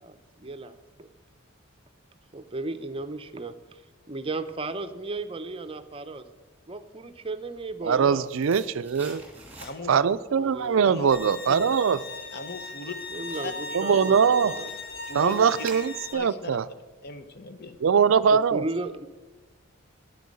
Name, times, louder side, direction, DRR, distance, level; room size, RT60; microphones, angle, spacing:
voice 1, 0.0-1.1 2.3-3.8 4.1-6.2 6.7-8.3 10.3-10.8 13.1-14.7 18.3-19.1, right 2 dB, 25° right, 10 dB, 0.6 m, -35 dB
voice 2, 7.8-9.2 9.9-12.0 13.7-14.5 15.1-16.6 17.8-18.6, right 6 dB, 65° right, 15 dB, 0.4 m, -22 dB
sound 1, 8.2-10.1 10.5-16.3 16.7-16.8, right 3 dB, 10° right, 2.6 m, -48 dB
voice 3, 9.6-10.0 10.8-11.1 11.5-11.6 12.3-12.9 13.4-13.5 15.1-15.4 16.1-16.6 17.0-17.8, left 3 dB, 45° left, 9 dB, 1.0 m, -37 dB
Bowed string instrument, 11.1-16.1, left 3 dB, 80° left, 1.8 m, -38 dB
9.7 x 9.2 x 7.6 m, 1.2 s
head